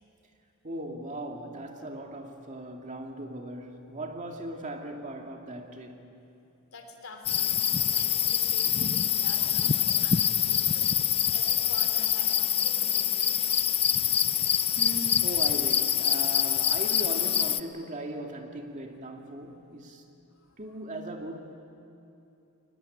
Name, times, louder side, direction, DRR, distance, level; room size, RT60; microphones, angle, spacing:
voice 1, 0.6-6.1 14.8-20.0 20.6-21.5, right 1 dB, 35° right, 2.3 m, -38 dB
voice 2, 6.7-13.5 20.4-20.8, left 3 dB, 75° left, 3.5 m, -47 dB
sound 1, 7.2-17.6, left 9 dB, 30° left, 0.5 m, -25 dB
23.0 x 19.5 x 9.8 m
head